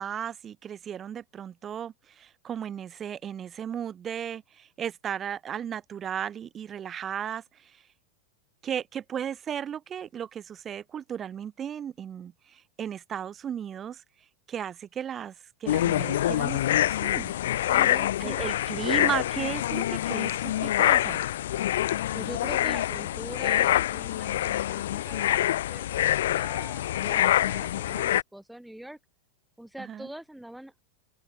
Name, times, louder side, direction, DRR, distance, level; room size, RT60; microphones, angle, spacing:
voice 1, 0.0-7.8 8.6-14.0 14.5-15.3 15.6-17.6 18.2-21.2 29.8-30.1, right 9 dB, 25° right, 6.1 m, -35 dB
sound 1, 15.7-28.2, left 13 dB, 60° left, 4.2 m, -26 dB
voice 2, 17.7-18.4 22.1-29.0 29.6-30.7, right 1 dB, ahead, 7.4 m, -43 dB
open air
figure-of-eight pair, 90°, 0 cm